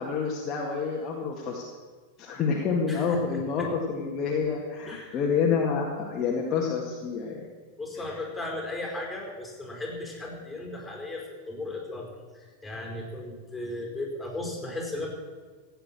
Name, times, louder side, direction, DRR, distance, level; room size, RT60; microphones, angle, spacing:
voice 1, 0.0-1.6 2.2-7.5 8.0-8.2, left 5 dB, 30° left, -1 dB, 2.0 m, -28 dB
voice 2, 2.9-3.7 4.9-5.2 7.8-12.1 12.3-15.1, left 2 dB, 5° left, -1 dB, 4.7 m, -36 dB
15.5 x 9.1 x 7.6 m, 1.5 s
figure-of-eight pair, 90°, 0 cm